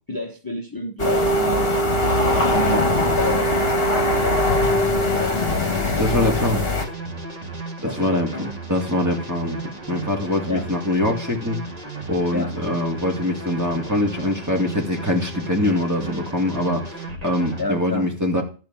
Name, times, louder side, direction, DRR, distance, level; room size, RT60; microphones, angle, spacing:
voice 1, 0.1-5.7 7.8-8.5 10.5-10.6 12.3-12.8 17.6-18.1, left 1 dB, 20° left, 1.1 m, -30 dB
sound 1, 1.0-6.9, left 1 dB, 50° left, 2.2 m, -20 dB
sound 2, 5.1-17.6, right 3 dB, 30° right, 1.9 m, -34 dB
voice 2, 6.0-6.7 7.9-8.3 8.7-11.6 12.1-18.4, left 1 dB, 15° right, 2.4 m, -23 dB
12.5 x 4.4 x 7.4 m
omnidirectional pair, 1.3 m